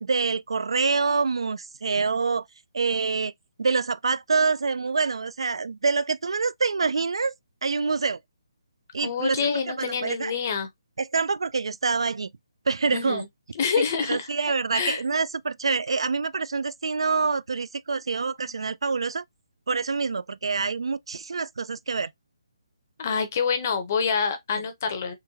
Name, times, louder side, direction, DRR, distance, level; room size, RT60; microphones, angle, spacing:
voice 1, 0.0-2.4 2.7-3.3 3.6-7.3 7.6-8.2 8.9-10.3 11.0-12.3 12.7-13.2 13.8-19.2 19.7-22.1, right 4 dB, 80° right, 0.3 m, -26 dB
voice 2, 9.0-10.7 12.9-13.3 13.6-14.3 14.7-15.0 23.0-25.1, left 6 dB, 25° left, 0.6 m, -26 dB
3.8 x 2.2 x 2.7 m
hypercardioid pair, 175°, 3 cm